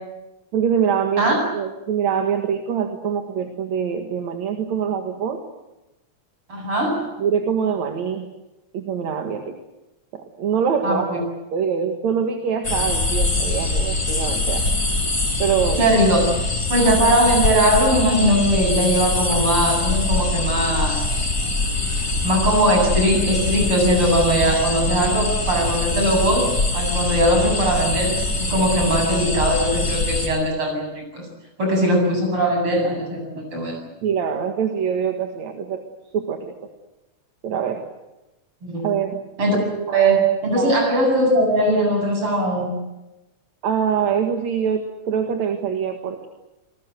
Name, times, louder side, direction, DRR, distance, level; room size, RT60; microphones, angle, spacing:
voice 1, 0.5-5.4 7.2-8.3 8.7-9.6 10.1-14.6 15.4-15.8 34.0-35.8 36.1-36.5 37.4-37.8 38.8-39.2 39.8-39.9 40.5-40.8 43.6-46.3, right 7 dB, 70° right, 5 dB, 3.0 m, -24 dB
voice 2, 6.5-7.0 10.8-11.2 15.8-16.2 16.7-21.1 22.2-31.3 31.6-33.8 38.6-38.9 39.4-39.6 39.9-42.7, right 1 dB, 45° right, 2 dB, 8.8 m, -20 dB
sound 1, 12.6-30.3, left 2 dB, 30° left, 7.5 m, -23 dB
28.0 x 20.5 x 8.1 m, 1.0 s
omnidirectional pair, 3.4 m